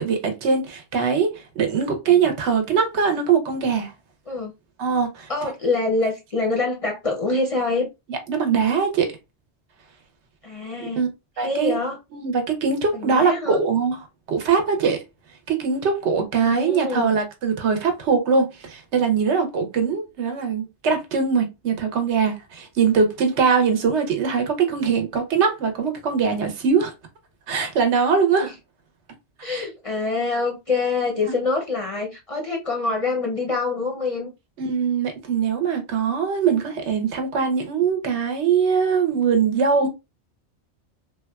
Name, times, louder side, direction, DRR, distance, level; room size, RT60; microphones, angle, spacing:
voice 1, 0.0-3.9 4.8-5.3 8.1-9.1 10.8-11.1 11.4-11.8 12.1-14.0 14.3-15.0 15.5-26.9 27.5-28.5 29.4-29.7 31.2-31.3 34.6-39.9, right 5 dB, 80° right, 1.0 m, -22 dB
voice 2, 5.3-7.9 10.4-11.1 11.4-12.0 12.9-13.6 16.4-17.1 28.4-28.5 29.4-34.3, left 3 dB, 45° left, 0.5 m, -25 dB
3.4 x 2.2 x 2.2 m
omnidirectional pair, 1.2 m